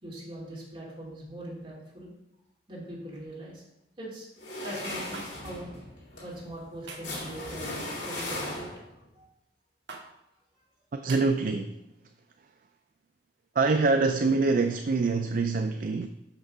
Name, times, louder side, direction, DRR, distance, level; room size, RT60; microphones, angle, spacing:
voice 1, 0.0-2.1 2.7-3.6 4.0-4.3 4.6-5.7 6.2-8.6 9.1-9.3, right 1 dB, 30° right, -6 dB, 3.1 m, -41 dB
sound 1, 4.4-9.0, left 1 dB, 80° left, 3.0 m, -37 dB
sound 2, 5.1-5.3 6.9-7.2 8.5-8.8 9.9-10.0 11.1-11.2, right 4 dB, 80° right, 1.2 m, -43 dB
voice 2, 10.9-11.8 13.5-16.1, right 3 dB, 50° right, 6 dB, 0.4 m, -25 dB
6.3 x 6.0 x 5.5 m, 0.89 s
head